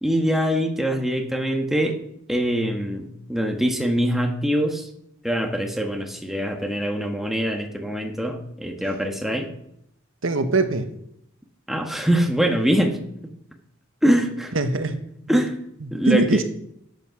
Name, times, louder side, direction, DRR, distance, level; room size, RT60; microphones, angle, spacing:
voice 1, 0.0-2.0 2.3-4.9 5.2-9.5 11.7-13.3 14.0-14.5 15.3-15.5 15.9-16.4, equal, ahead, 3 dB, 1.3 m, -23 dB
voice 2, 10.2-10.9 14.5-15.0 15.3-15.4 16.1-16.4, right 2 dB, 75° right, 8 dB, 1.2 m, -21 dB
13.0 x 8.2 x 5.8 m, 0.75 s
head